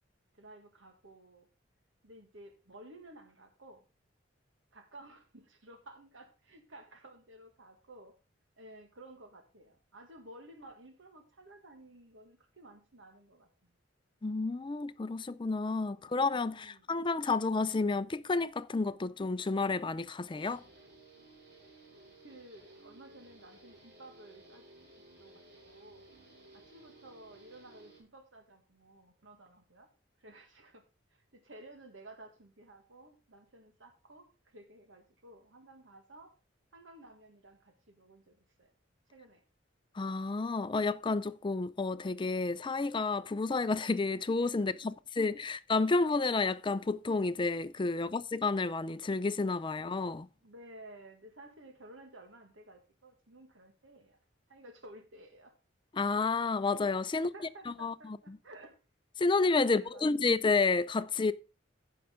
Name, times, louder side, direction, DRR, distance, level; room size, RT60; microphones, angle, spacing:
voice 1, 0.3-1.5 2.0-3.8 4.7-8.1 8.6-13.7 16.0-16.1 16.5-17.1 21.9-24.6 25.2-26.1 26.5-29.9 30.2-30.8 31.3-36.3 36.7-38.7 39.1-39.4 44.6-44.9 48.0-48.1 50.4-54.2 54.5-55.5 57.1-58.8 59.6-60.1, right 1 dB, 85° right, 1.7 m, -54 dB
voice 2, 14.2-20.6 40.0-50.3 55.9-57.3 57.7-58.4 59.2-61.3, left 3 dB, 25° left, 0.4 m, -30 dB
Guitar, 20.4-28.0, right 2 dB, 55° right, 5.0 m, -57 dB
15.0 x 5.7 x 3.7 m
head